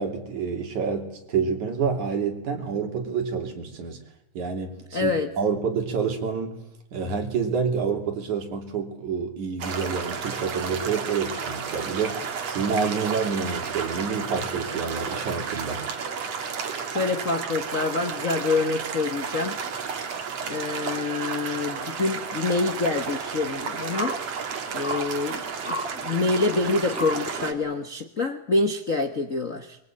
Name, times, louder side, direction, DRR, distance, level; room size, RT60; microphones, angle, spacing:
voice 1, 0.0-4.0 4.4-6.6 6.9-12.2 12.5-15.9, right 5 dB, 75° right, 4 dB, 4.3 m, -28 dB
voice 2, 4.9-5.3 16.9-19.6 20.5-24.2 24.7-29.8, left 3 dB, 45° left, 6 dB, 1.0 m, -26 dB
sound 1, 9.6-27.5, right 6 dB, 60° right, 3.0 m, -32 dB
sound 2, 22.8-27.8, equal, 5° right, 1.3 m, -37 dB
25.0 x 22.5 x 8.8 m, 0.80 s
omnidirectional pair, 3.4 m